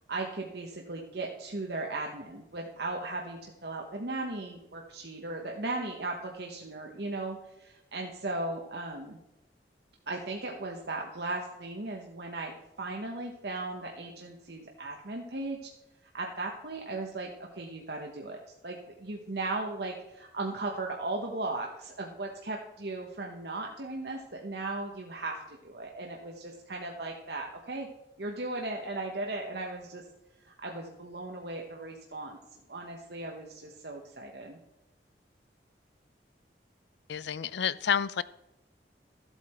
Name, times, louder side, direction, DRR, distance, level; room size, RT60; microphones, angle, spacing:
voice 1, 0.1-9.2 10.1-15.7 16.1-27.9 28.2-30.1 30.4-32.4 32.7-34.6, right 2 dB, 65° right, 0 dB, 1.1 m, -37 dB
voice 2, 37.1-38.2, left 8 dB, 75° left, 18 dB, 0.5 m, -29 dB
14.0 x 8.2 x 4.4 m, 0.95 s
head